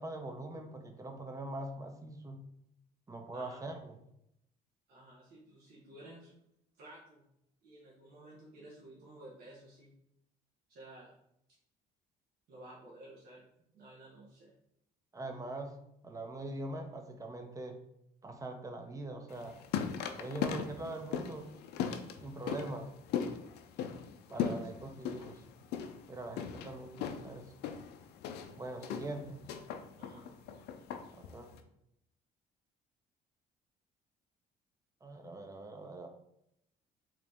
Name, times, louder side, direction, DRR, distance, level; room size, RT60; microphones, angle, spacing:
voice 1, 0.0-2.4 3.1-4.0 15.1-15.7 16.0-17.8 18.2-19.5 20.2-21.5 22.2-22.9 24.3-25.4 26.1-27.5 28.6-29.4 31.1-31.6 35.0-36.1, right 2 dB, 20° right, 5 dB, 0.7 m, -42 dB
voice 2, 4.9-6.3 6.8-7.3 7.6-9.9 10.7-11.2 12.5-13.4 13.7-14.5 24.3-24.7 30.0-30.2, right 1 dB, 70° right, -5 dB, 1.2 m, -53 dB
sound 1, 19.3-31.6, left 7 dB, 80° left, 0.5 m, -39 dB
3.7 x 3.0 x 3.5 m, 0.76 s
cardioid pair, 110°, 17 cm